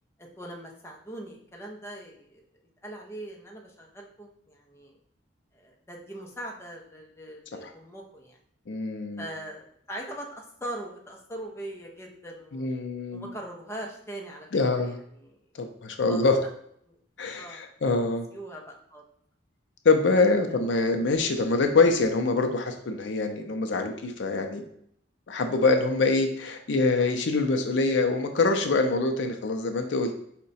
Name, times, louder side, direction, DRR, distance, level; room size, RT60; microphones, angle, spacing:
voice 1, 0.2-5.0 5.5-8.4 9.2-12.7 13.1-15.4 16.0-16.3 16.8-17.0 17.4-17.6 18.0-19.0 20.2-20.4 25.6-25.7, right 1 dB, 15° left, -1 dB, 0.6 m, -41 dB
voice 2, 8.7-9.2 12.5-13.3 14.5-15.0 15.5-16.4 17.2-18.3 19.8-24.6 25.3-30.1, left 3 dB, 70° left, 6 dB, 0.5 m, -24 dB
4.7 x 2.2 x 4.0 m, 0.68 s
head